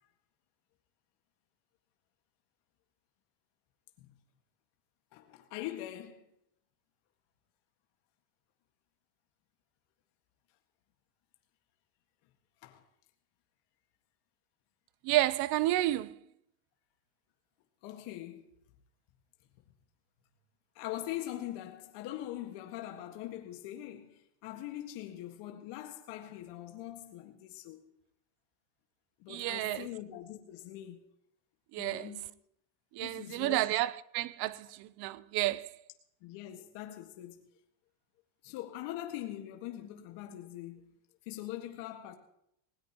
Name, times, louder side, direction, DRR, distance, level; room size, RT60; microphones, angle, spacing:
voice 1, 5.1-6.2 12.6-12.8 17.8-18.5 20.8-27.8 29.2-31.0 31.8-32.3 33.0-33.6 36.2-37.5 38.4-41.0 41.3-42.1, left 13 dB, 60° left, 1.8 m, -42 dB
voice 2, 15.0-16.2 29.3-29.9 31.7-32.1 32.9-35.7, right 16 dB, 55° right, 0.7 m, -31 dB
19.5 x 17.5 x 3.0 m
supercardioid pair, 120°, 47 cm